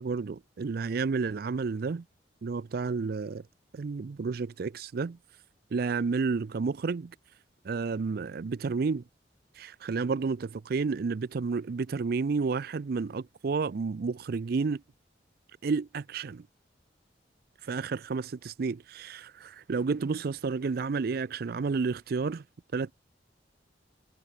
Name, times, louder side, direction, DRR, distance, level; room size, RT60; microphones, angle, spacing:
voice 1, 0.0-2.0 2.4-3.4 3.7-5.2 5.7-7.1 7.6-9.0 9.6-14.8 15.6-16.5 17.6-22.4 22.7-22.9, right 4 dB, 55° right, 0.4 m, -31 dB
head